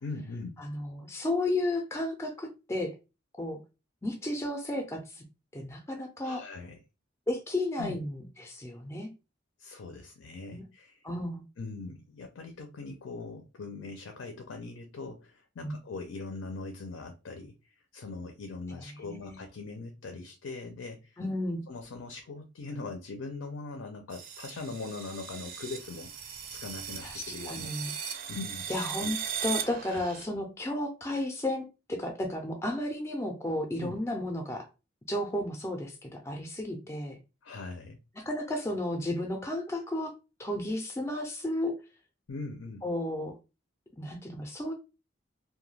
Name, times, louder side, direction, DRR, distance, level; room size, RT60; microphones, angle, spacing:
voice 1, 0.0-0.7 6.2-6.8 7.8-8.0 9.6-11.1 11.6-21.2 21.7-27.7 28.3-28.7 29.0-29.1 29.9-30.0 33.8-34.0 37.4-38.0 42.3-42.9, left 3 dB, 80° left, 0.4 m, -41 dB
voice 2, 0.6-2.9 3.4-3.6 4.0-5.2 5.5-6.4 7.3-9.1 10.5-10.6 11.0-11.4 15.6-15.7 19.0-19.4 21.2-21.6 27.0-27.9 28.7-29.2 29.4-34.7 35.1-37.2 38.2-40.1 40.4-41.7 42.8-43.4 44.0-44.7, left 1 dB, 15° left, 0.4 m, -33 dB
sound 1, 24.1-30.3, right 7 dB, 45° right, 0.4 m, -38 dB
2.2 x 2.1 x 3.1 m
head